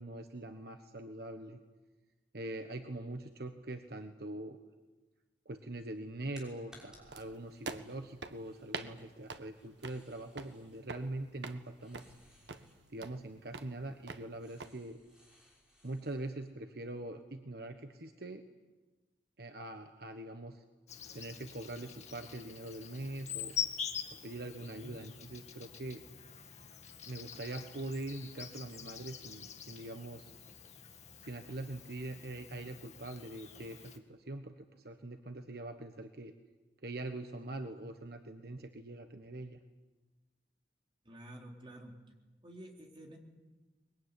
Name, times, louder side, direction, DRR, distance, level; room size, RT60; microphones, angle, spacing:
voice 1, 0.0-1.6 2.3-4.6 5.4-12.0 12.9-15.0 15.8-18.4 19.4-20.6 21.1-23.5 24.1-26.0 27.0-30.3 31.2-36.3 36.8-39.6, right 2 dB, 60° right, 6 dB, 1.3 m, -43 dB
sound 1, 5.5-16.5, left 1 dB, 5° right, 5.7 m, -65 dB
sound 2, 7.1-14.7, right 3 dB, 90° right, 1.5 m, -47 dB
Insect, 20.9-34.0, left 8 dB, 40° left, 2.0 m, -45 dB
voice 2, 41.1-41.9 42.4-43.2, right 1 dB, 30° right, 1 dB, 4.0 m, -50 dB
23.0 x 21.5 x 9.9 m, 1.2 s
head